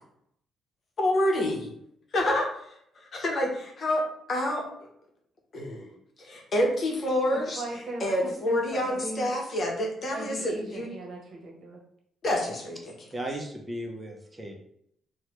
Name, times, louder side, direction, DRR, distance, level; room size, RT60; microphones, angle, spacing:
voice 1, 1.0-1.7 2.1-2.5 3.0-4.9 5.5-5.9 6.2-7.6 8.0-10.9 12.2-12.8, left 1 dB, 45° left, 0 dB, 0.8 m, -27 dB
voice 2, 7.3-9.3 10.1-11.8, right 2 dB, 55° right, -1 dB, 0.9 m, -38 dB
voice 3, 13.1-14.6, right 1 dB, 20° right, 2 dB, 0.6 m, -36 dB
3.1 x 2.2 x 3.0 m, 0.72 s
cardioid pair, 90°, 0 cm